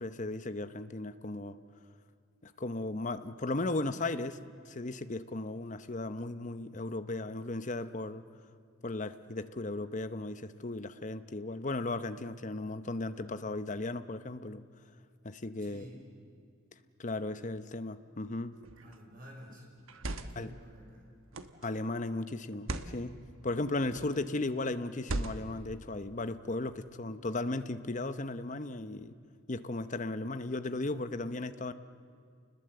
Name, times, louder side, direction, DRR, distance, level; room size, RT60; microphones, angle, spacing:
voice 1, 0.0-1.6 2.4-8.2 8.8-14.6 15.2-15.8 17.0-18.5 20.3-20.6 21.6-29.2 29.5-31.7, left 2 dB, 35° left, 11 dB, 0.9 m, -36 dB
voice 2, 15.6-16.0 18.8-19.7 20.0-21.1, equal, 40° right, 0 dB, 6.0 m, -51 dB
sound 1, 18.6-19.0 19.8-20.5 21.3-21.7 22.5-23.0 23.8-24.2 25.0-25.6, right 2 dB, 70° right, 1.2 m, -38 dB
30.0 x 20.5 x 7.8 m, 2.2 s
head